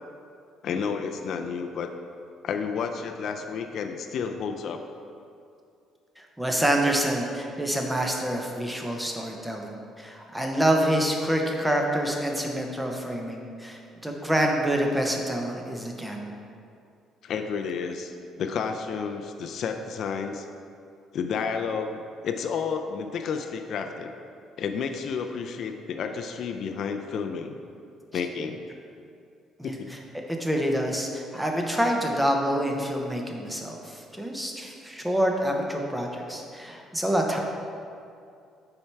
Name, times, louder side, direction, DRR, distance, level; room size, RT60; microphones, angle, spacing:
voice 1, 0.6-1.9 2.4-4.9 17.2-20.5 21.1-24.1 24.6-27.6 28.1-28.6 29.6-29.9, left 6 dB, 45° left, 5 dB, 0.3 m, -31 dB
voice 2, 6.2-16.3 29.6-29.7 30.1-37.4, right 1 dB, 5° right, 1 dB, 0.6 m, -27 dB
7.0 x 4.5 x 4.5 m, 2.5 s
cardioid pair, 175°, 0 cm